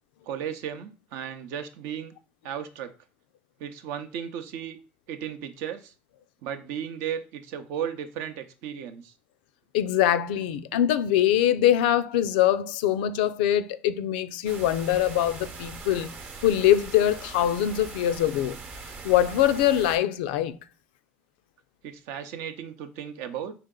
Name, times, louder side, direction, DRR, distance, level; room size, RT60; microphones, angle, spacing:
voice 1, 0.3-2.1 2.4-2.9 3.6-4.8 5.1-5.9 6.4-9.1 21.8-23.5, right 9 dB, 70° right, 0.6 m, -35 dB
voice 2, 9.7-16.1 16.4-18.6 19.0-20.6, left 11 dB, 85° left, 0.3 m, -23 dB
sound 1, 14.5-20.0, right 4 dB, 45° right, 0.8 m, -41 dB
4.2 x 2.9 x 3.7 m
supercardioid pair, 95°, 5 cm